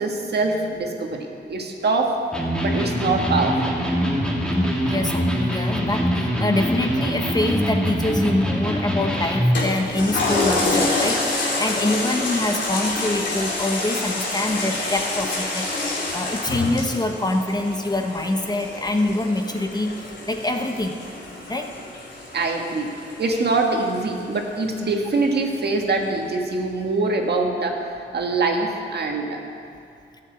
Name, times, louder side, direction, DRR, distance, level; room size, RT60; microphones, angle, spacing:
voice 1, 0.0-2.1 2.6-3.8 22.3-22.9 23.2-29.4, right 3 dB, 60° right, 2 dB, 1.7 m, -24 dB
Electric guitar, 2.3-9.6, equal, 5° left, 2.5 m, -23 dB
voice 2, 4.5-21.0 21.5-21.7, left 2 dB, 20° left, 4 dB, 0.9 m, -25 dB
Toilet flush, 9.5-24.4 24.8-24.9, left 2 dB, 70° left, 2.9 m, -27 dB
13.5 x 7.7 x 8.3 m, 2.5 s
wide cardioid pair, 110°, 19 cm